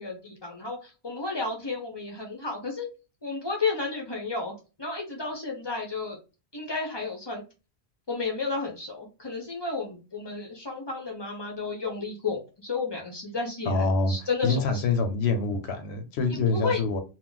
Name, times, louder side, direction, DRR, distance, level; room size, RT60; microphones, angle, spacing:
voice 1, 0.0-2.9 3.2-6.2 6.5-7.4 8.1-14.8 16.3-16.8, left 4 dB, 35° left, 0.5 m, -32 dB
voice 2, 13.7-14.1 14.4-17.0, left 3 dB, 80° left, 0.9 m, -25 dB
2.4 x 2.1 x 3.8 m
omnidirectional pair, 1.1 m